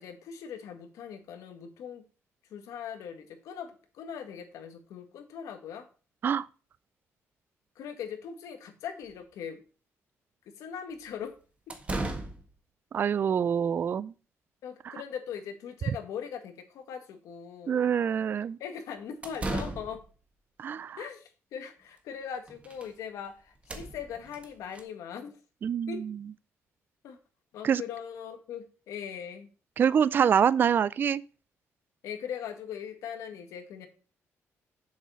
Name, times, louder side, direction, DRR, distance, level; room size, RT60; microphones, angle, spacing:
voice 1, 0.0-2.0 2.5-5.9 7.8-9.6 10.5-11.3 14.6-17.9 18.6-20.0 21.0-25.4 25.9-26.0 27.0-27.2 27.5-29.5 32.0-33.9, left 8 dB, 85° left, 1.8 m, -40 dB
sound 1, 9.1-9.2 11.1-11.2 11.7-12.5 19.0-20.2 22.0-22.1 22.3-22.9 23.2-23.3 23.6-24.8, right 2 dB, 25° right, 1.7 m, -36 dB
voice 2, 12.9-14.1 14.9-15.0 17.7-18.6 20.6-21.0 25.6-26.0 27.6-27.8 29.8-31.2, right 8 dB, 40° right, 0.3 m, -25 dB
7.3 x 7.3 x 5.6 m
cardioid pair, 135°, 5 cm